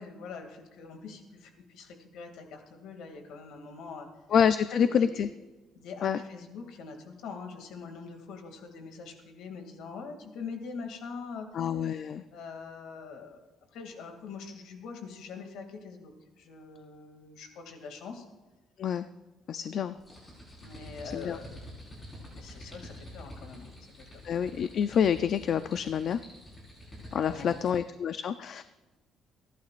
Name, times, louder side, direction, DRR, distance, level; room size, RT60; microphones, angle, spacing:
voice 1, 0.0-4.1 4.7-5.2 5.8-11.5 12.3-13.4 13.7-18.3 20.6-21.6 22.2-23.7 24.0-24.2 27.2-27.7, left 5 dB, 75° left, 4 dB, 2.3 m, -43 dB
voice 2, 4.3-5.3 6.0-6.2 11.5-12.2 18.8-19.1 19.5-20.0 21.1-21.4 24.2-26.2 27.1-28.6, left 8 dB, 45° left, 12 dB, 0.4 m, -27 dB
sound 1, 20.0-27.8, equal, 15° left, 4.3 m, -47 dB
28.5 x 11.5 x 2.5 m, 1.2 s
cardioid pair, 180°, 0 cm